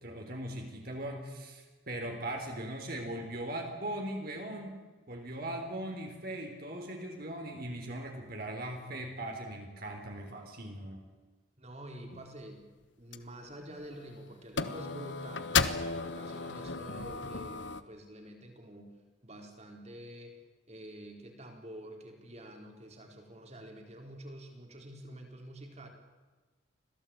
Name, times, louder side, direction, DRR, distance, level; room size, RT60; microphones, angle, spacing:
voice 1, 0.0-4.8 5.1-11.0, right 1 dB, 50° right, 2 dB, 3.7 m, -39 dB
voice 2, 11.6-12.7 13.0-18.9 19.2-20.3 20.7-25.9, right 1 dB, 35° right, 3 dB, 3.9 m, -47 dB
sound 1, 12.1-12.3 13.1-13.3 13.6-14.2 14.6-17.8, left 5 dB, 65° left, 1.2 m, -34 dB
25.5 x 17.0 x 8.7 m, 1.3 s
head